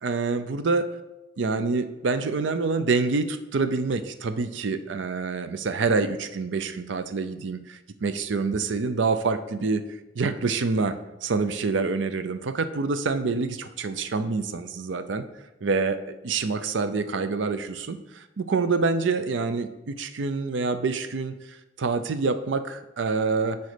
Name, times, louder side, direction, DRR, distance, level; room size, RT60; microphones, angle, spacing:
voice 1, 0.0-0.9 1.4-9.8 10.2-15.3 15.6-23.6, right 4 dB, 85° right, 11 dB, 0.5 m, -26 dB
10.5 x 4.2 x 5.0 m, 1.0 s
head